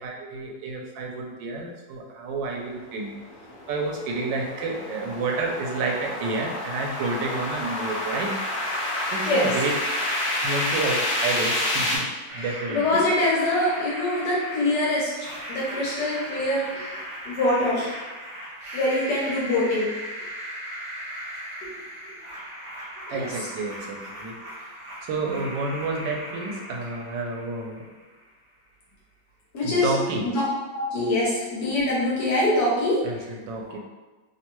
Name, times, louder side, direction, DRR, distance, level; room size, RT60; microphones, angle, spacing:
voice 1, 0.0-3.1 3.7-9.7 10.4-12.1 12.3-12.8 21.4-21.5 23.1-24.7 25.0-27.8 29.6-30.3 33.0-33.8, right 3 dB, 85° right, 1 dB, 1.3 m, -30 dB
sound 1, 2.9-12.0, left 1 dB, 45° left, 1.1 m, -29 dB
sound 2, 12.3-28.2, equal, 65° right, 0.7 m, -38 dB
voice 2, 12.7-15.1 15.5-17.9 18.7-19.9 23.1-23.2 29.5-29.9 30.2-30.4 30.7-33.0, left 1 dB, 70° left, -6 dB, 1.2 m, -24 dB
3.1 x 2.2 x 2.9 m, 1.2 s
omnidirectional pair, 1.9 m